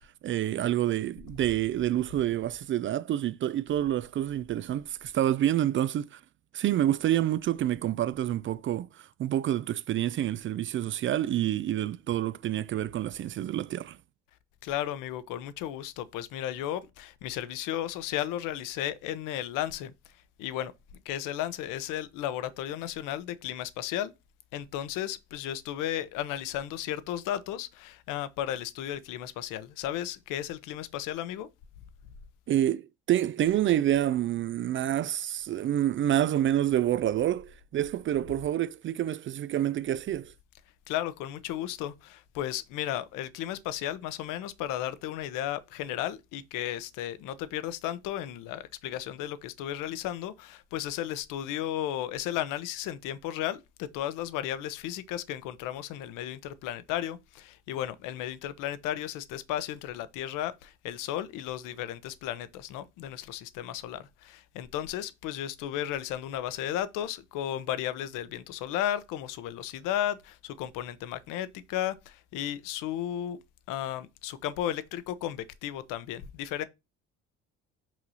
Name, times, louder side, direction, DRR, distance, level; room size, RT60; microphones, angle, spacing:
voice 1, 0.2-6.2 6.5-14.0 32.5-40.3, right 12 dB, 35° right, 0.4 m, -28 dB
voice 2, 14.6-19.9 20.4-20.7 21.0-24.1 24.5-31.5 40.9-73.4 73.7-76.6, left 12 dB, 65° left, 1.0 m, -34 dB
6.0 x 5.9 x 2.9 m
hypercardioid pair, 60°, 35 cm